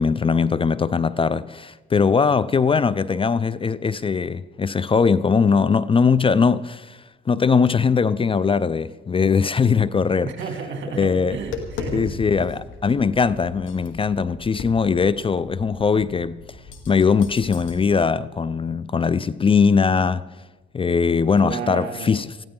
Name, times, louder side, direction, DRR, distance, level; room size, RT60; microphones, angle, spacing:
voice 1, 0.0-10.3 11.0-11.4 11.9-16.4 16.9-20.2 20.7-22.4, left 5 dB, 25° left, 0.4 m, -20 dB
voice 2, 10.2-12.1 12.4-12.5 21.4-22.1, right 6 dB, 65° right, 2.7 m, -32 dB
Tap, 11.1-17.8, left 3 dB, 75° left, 2.2 m, -38 dB
20.0 x 15.0 x 3.8 m
cardioid pair, 90°, 20 cm